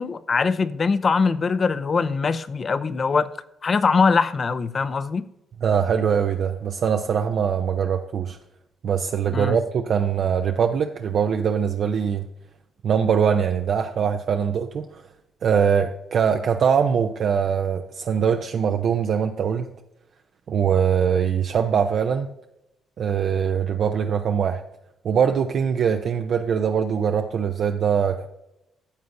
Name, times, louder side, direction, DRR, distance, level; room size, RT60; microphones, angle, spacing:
voice 1, 0.0-3.3 3.6-5.2 9.3-9.6, left 5 dB, 40° left, 0.5 m, -22 dB
voice 2, 5.6-8.4 8.8-12.2 12.8-15.0 15.4-19.7 20.5-22.3 23.0-24.6 25.0-28.3, right 7 dB, 60° right, 0.5 m, -22 dB
13.0 x 7.8 x 2.6 m
cardioid pair, 90°, 0 cm